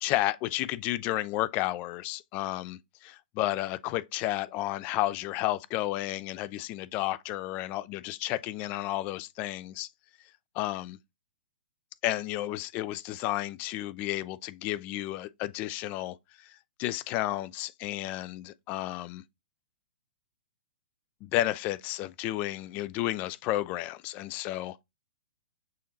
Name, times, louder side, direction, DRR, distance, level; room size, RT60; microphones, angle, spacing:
voice 1, 0.0-9.9 10.6-11.0 12.0-16.5 16.8-19.2 21.2-24.8, left 16 dB, 30° left, 0.3 m, -32 dB
6.3 x 2.7 x 2.6 m
figure-of-eight pair, 115°, 5 cm